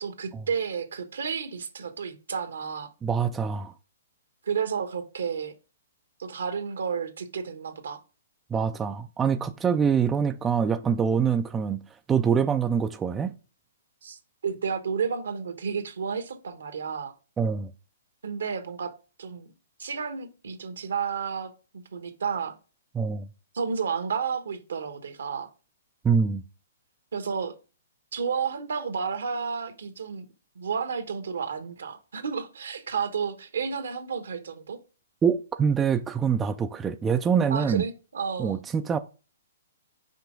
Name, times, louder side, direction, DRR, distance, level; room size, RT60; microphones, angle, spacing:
voice 1, 0.0-2.9 4.4-5.5 6.2-8.0 14.0-14.2 14.4-17.1 18.2-18.9 19.2-19.5 19.8-22.6 23.5-25.5 27.1-27.5 28.1-30.3 30.5-34.8 37.5-38.6, right 6 dB, 80° right, 1.2 m, -31 dB
voice 2, 3.0-3.7 8.5-11.8 12.1-13.3 17.4-17.7 22.9-23.3 26.0-26.4 35.2-37.8 38.4-39.0, right 6 dB, 15° right, 0.4 m, -25 dB
5.9 x 4.7 x 3.7 m
hypercardioid pair, 135°, 0 cm